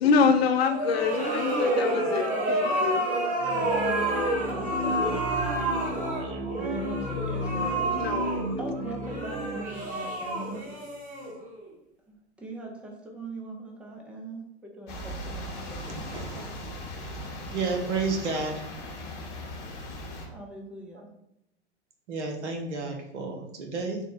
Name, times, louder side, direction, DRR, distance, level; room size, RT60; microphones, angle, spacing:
voice 1, 0.0-3.1 5.5-5.7 7.9-8.4, left 5 dB, 60° left, 7 dB, 0.6 m, -25 dB
sound 1, 0.7-11.6, right 1 dB, 25° right, 1.0 m, -29 dB
sound 2, 3.4-10.6, right 1 dB, 50° right, 0.8 m, -35 dB
voice 2, 4.5-5.3 6.2-7.8 8.6-10.6 12.1-15.8 16.2-16.4 20.3-21.1, right 1 dB, 5° right, 0 dB, 0.5 m, -41 dB
sound 3, 14.9-20.3, left 1 dB, 45° left, 1.1 m, -38 dB
voice 3, 15.9-16.5 17.5-18.7 22.1-24.0, right 4 dB, 75° right, 2 dB, 1.0 m, -31 dB
3.6 x 2.2 x 4.0 m, 0.80 s
hypercardioid pair, 105°, 35 cm